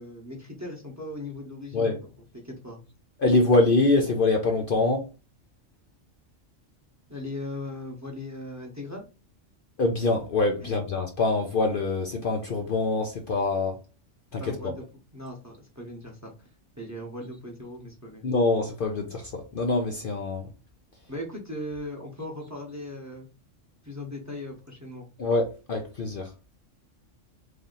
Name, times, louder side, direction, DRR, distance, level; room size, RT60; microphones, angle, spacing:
voice 1, 0.0-2.8 7.1-9.1 10.6-10.8 14.4-14.8 15.1-16.5 16.8-18.2 21.1-23.3 23.8-25.1, left 1 dB, 15° right, 0.8 m, -38 dB
voice 2, 3.2-5.0 9.8-13.8 14.3-14.7 18.2-20.5 25.2-26.3, left 2 dB, 55° left, 0.7 m, -24 dB
3.3 x 2.7 x 3.8 m
omnidirectional pair, 1.3 m